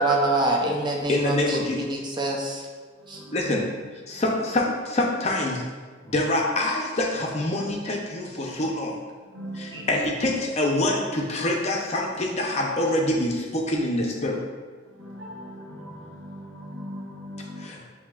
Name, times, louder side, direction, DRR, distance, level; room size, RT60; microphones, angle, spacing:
voice 1, 0.0-2.7 3.1-3.2, right 2 dB, 25° right, -1 dB, 0.5 m, -26 dB
voice 2, 1.1-1.8 3.3-3.7 4.1-5.6 6.0-8.9 9.5-14.4 17.6-17.8, left 1 dB, 35° left, -1 dB, 0.6 m, -25 dB
voice 3, 3.0-3.6 9.3-9.9 14.9-17.7, equal, 75° right, -3 dB, 1.0 m, -38 dB
8.1 x 2.8 x 2.3 m, 1.4 s
head